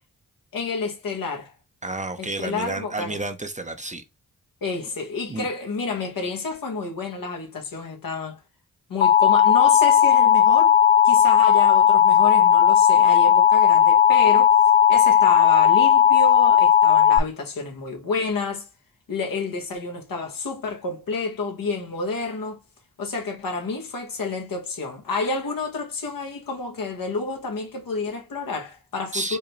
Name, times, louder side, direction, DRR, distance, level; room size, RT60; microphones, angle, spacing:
voice 1, 0.5-1.5 2.2-3.2 4.6-8.4 8.9-10.8 11.0-14.5 14.9-18.7 19.1-22.6 23.0-29.4, left 3 dB, 70° left, 1.3 m, -29 dB
voice 2, 1.8-4.0 5.3-5.5 29.1-29.4, right 2 dB, 20° right, 0.7 m, -31 dB
Alarm, 9.0-17.2, left 8 dB, 30° left, 0.3 m, -16 dB
4.9 x 2.2 x 3.2 m
cardioid pair, 50°, 35 cm